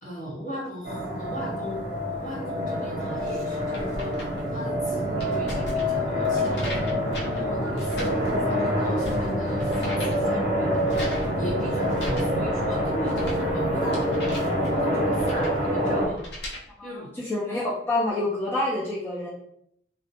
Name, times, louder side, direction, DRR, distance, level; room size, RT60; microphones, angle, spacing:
voice 1, 0.0-14.1 14.5-17.1, equal, 45° left, -4 dB, 0.9 m, -38 dB
sound 1, 0.8-16.1, equal, 45° right, 0.7 m, -26 dB
sound 2, 2.9-16.6, left 1 dB, 70° left, 0.7 m, -39 dB
voice 2, 16.8-19.3, left 2 dB, 10° left, -7 dB, 0.4 m, -27 dB
2.4 x 2.1 x 2.8 m, 0.72 s
head